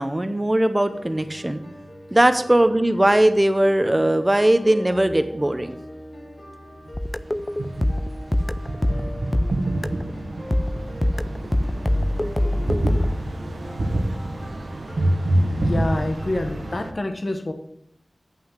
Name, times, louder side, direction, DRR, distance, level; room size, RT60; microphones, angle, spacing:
voice 1, 0.0-1.6 2.1-5.8, right 1 dB, 20° right, 9 dB, 0.8 m, -19 dB
sound 1, 0.9-16.9, left 1 dB, 75° left, 2.8 m, -41 dB
sound 2, 6.9-10.1 10.5-13.2, left 1 dB, 20° left, 0.4 m, -24 dB
sound 3, 6.9-16.9, right 1 dB, 75° right, 1.2 m, -27 dB
voice 2, 15.6-17.5, left 1 dB, 45° left, 6 dB, 1.1 m, -27 dB
8.7 x 5.8 x 7.6 m, 0.71 s
wide cardioid pair, 80°, 0 cm